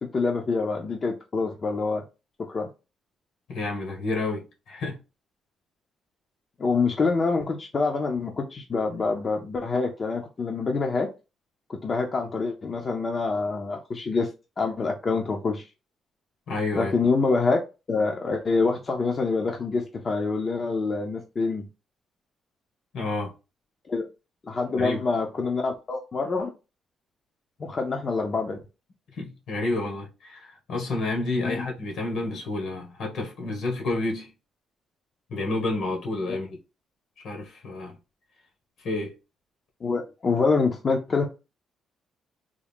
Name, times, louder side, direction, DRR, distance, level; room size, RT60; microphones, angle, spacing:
voice 1, 0.0-2.0 2.5-2.7 6.6-11.1 11.7-14.3 14.6-15.6 16.7-17.6 17.9-21.6 23.9-24.0 24.5-26.5 27.6-28.6 31.4-31.6 39.8-41.3, left 4 dB, 40° left, 0.6 m, -26 dB
voice 2, 3.5-5.0 16.5-16.9 22.9-23.3 24.7-25.0 29.2-34.3 35.3-36.6 37.2-37.9 38.8-39.1, left 2 dB, 75° left, 1.6 m, -30 dB
3.6 x 2.1 x 3.5 m
cardioid pair, 90°, 0 cm